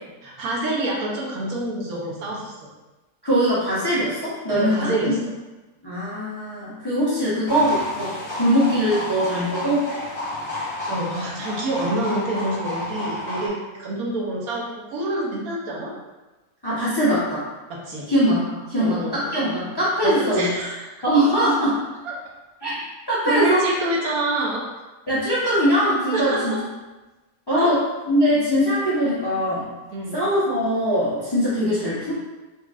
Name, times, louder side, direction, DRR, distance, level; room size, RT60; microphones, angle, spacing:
voice 1, 0.2-2.7 4.5-5.2 10.9-14.6 14.9-15.9 17.7-18.1 18.8-19.2 20.0-20.9 22.0-22.1 23.2-24.6 26.1-26.6 27.5-27.8 29.9-30.2, right 1 dB, 70° right, -3 dB, 1.2 m, -27 dB
voice 2, 3.2-5.0 5.8-9.9 16.6-17.4 18.1-20.5 21.0-21.8 22.6-22.8 23.1-23.7 25.1-26.6 27.5-29.7 30.1-32.1, equal, 30° left, -9 dB, 0.4 m, -21 dB
sound 1, 7.5-13.5, left 1 dB, 85° left, 1.6 m, -31 dB
4.0 x 2.8 x 2.4 m, 1.1 s
omnidirectional pair, 1.6 m